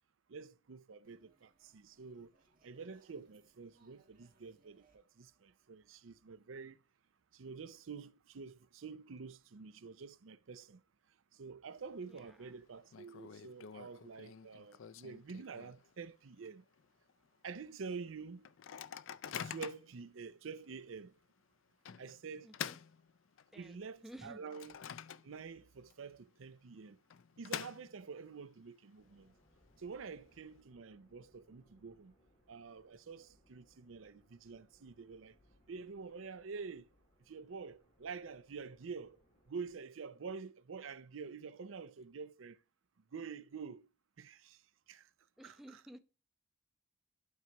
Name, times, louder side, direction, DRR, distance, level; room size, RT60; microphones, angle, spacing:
voice 1, 0.3-2.3 2.6-6.8 7.3-10.8 11.3-16.6 17.4-18.5 19.4-21.1 22.0-22.6 23.5-24.8 25.2-27.0 27.4-29.3 29.8-32.1 32.5-35.4 35.7-36.9 37.3-39.2 39.5-42.6 43.1-43.9 44.2-44.6 44.9-45.1 45.4-45.8, right 5 dB, 80° right, 0.5 m, -48 dB
sound 1, 1.0-6.2, right 3 dB, 45° right, 1.4 m, -73 dB
Microwave oven, 11.7-12.2 12.5-12.6 12.9-16.0 16.4-16.5 16.8-17.1 17.6-17.7 18.4-20.0 20.6-20.7 21.9-23.7 24.1-25.6 25.9-26.0 26.9-28.3, left 8 dB, 80° left, 0.4 m, -47 dB
voice 2, 12.1-12.5 22.4-22.8 23.5-24.4 45.4-46.0, equal, ahead, 0.8 m, -54 dB
sound 2, 29.0-39.8, equal, 40° left, 3.1 m, -71 dB
12.0 x 4.7 x 2.9 m
head